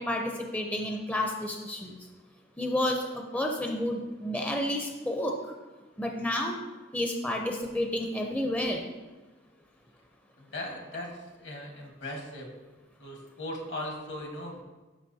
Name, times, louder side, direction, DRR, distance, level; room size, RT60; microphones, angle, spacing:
voice 1, 0.0-2.0 2.6-5.4 6.0-6.6 6.9-8.9, left 1 dB, 10° left, 2 dB, 0.5 m, -30 dB
voice 2, 10.4-11.1 11.4-12.5 13.0-14.6, left 1 dB, 65° left, 1 dB, 1.4 m, -38 dB
12.0 x 5.2 x 2.7 m, 1.2 s
head